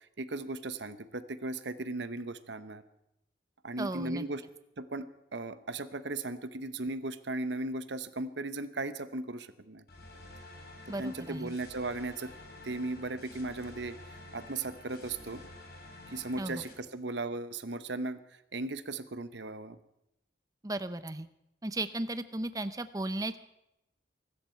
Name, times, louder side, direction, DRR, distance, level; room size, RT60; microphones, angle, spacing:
voice 1, 0.2-2.8 3.6-4.4 4.8-9.8 11.0-12.3 12.6-14.0 14.3-15.4 16.1-18.2 18.5-19.8, right 2 dB, 75° right, 12 dB, 1.0 m, -37 dB
voice 2, 3.8-4.2 10.9-11.5 16.4-16.6 20.6-21.3 21.6-23.4, right 2 dB, 20° right, 12 dB, 0.8 m, -35 dB
sound 1, 9.9-16.7, left 2 dB, 55° left, 3.5 m, -50 dB
23.0 x 13.0 x 4.6 m, 0.85 s
head